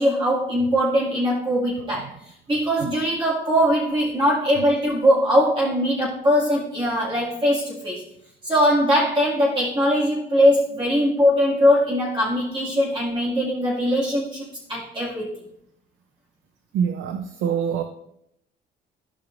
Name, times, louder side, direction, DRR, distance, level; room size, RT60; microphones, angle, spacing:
voice 1, 0.0-2.1 2.5-8.0 8.4-15.4, equal, 25° right, -7 dB, 2.2 m, -21 dB
voice 2, 16.7-17.8, right 7 dB, 80° right, 7 dB, 0.7 m, -24 dB
15.5 x 5.2 x 2.6 m, 0.75 s
cardioid pair, 90°, 20 cm